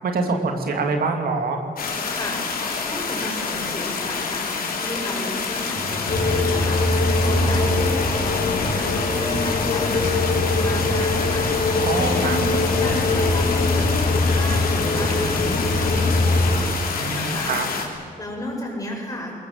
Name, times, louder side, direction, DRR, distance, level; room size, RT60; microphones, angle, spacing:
voice 1, 0.0-1.6 11.8-12.4 16.9-17.7, right 4 dB, 80° right, 4 dB, 2.7 m, -25 dB
sound 1, 1.8-17.9, left 5 dB, 75° left, 3.2 m, -28 dB
voice 2, 2.1-2.5 2.8-12.5 12.8-17.6 18.2-19.3, left 1 dB, 25° left, -1 dB, 6.7 m, -33 dB
sound 2, 5.7-16.5, equal, 40° right, 7.7 m, -32 dB
sound 3, 6.1-16.6, left 2 dB, 55° left, 3.2 m, -22 dB
21.0 x 21.0 x 7.9 m, 2.2 s
wide cardioid pair, 115°, 15 cm